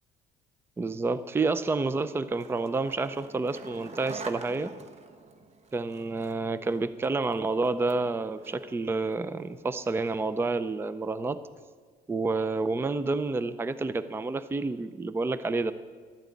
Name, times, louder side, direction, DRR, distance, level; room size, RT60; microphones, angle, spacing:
voice 1, 0.8-4.7 5.7-11.4 12.1-15.7, right 3 dB, 15° right, 13 dB, 0.5 m, -29 dB
Skateboard, 2.0-10.3, right 3 dB, 40° right, 1.1 m, -47 dB
12.0 x 8.9 x 8.3 m, 1.5 s
cardioid pair, 110°, 17 cm